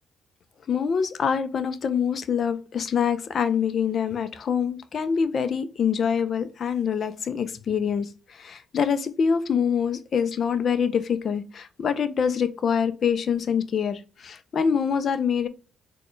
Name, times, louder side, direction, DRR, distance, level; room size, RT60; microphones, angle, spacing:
voice 1, 0.7-15.5, left 7 dB, 55° left, 0.4 m, -25 dB
4.1 x 2.2 x 3.1 m
cardioid pair, 90°, 0 cm